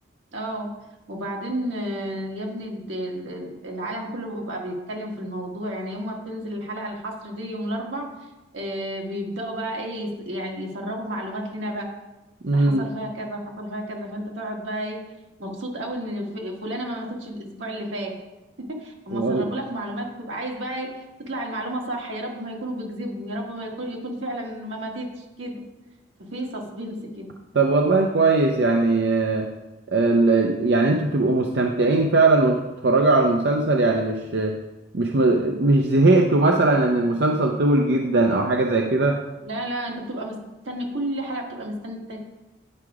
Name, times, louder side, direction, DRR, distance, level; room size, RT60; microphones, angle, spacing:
voice 1, 0.3-0.7 1.1-8.1 8.5-11.8 12.5-15.0 15.4-18.2 18.8-20.9 21.2-25.6 26.2-27.3 39.4-40.3 40.6-42.2, right 1 dB, 85° right, 0 dB, 1.6 m, -31 dB
voice 2, 12.4-12.8 19.1-19.5 27.5-29.5 29.9-34.6 34.9-39.2, right 2 dB, 60° right, 2 dB, 0.6 m, -19 dB
9.6 x 4.8 x 4.8 m, 1.0 s
head